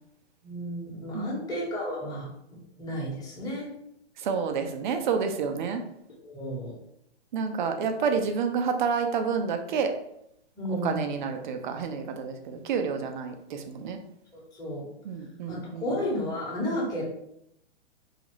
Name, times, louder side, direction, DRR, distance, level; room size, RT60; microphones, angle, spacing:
voice 1, 0.4-2.3 2.8-3.7 6.2-6.7 10.6-11.2 14.6-14.9 15.5-17.0, equal, 10° left, -5 dB, 1.2 m, -32 dB
voice 2, 4.2-5.8 7.3-9.9 10.7-14.0 15.0-15.9, right 5 dB, 45° right, 6 dB, 0.6 m, -29 dB
4.0 x 2.8 x 3.1 m, 0.77 s
hypercardioid pair, 140°, 33 cm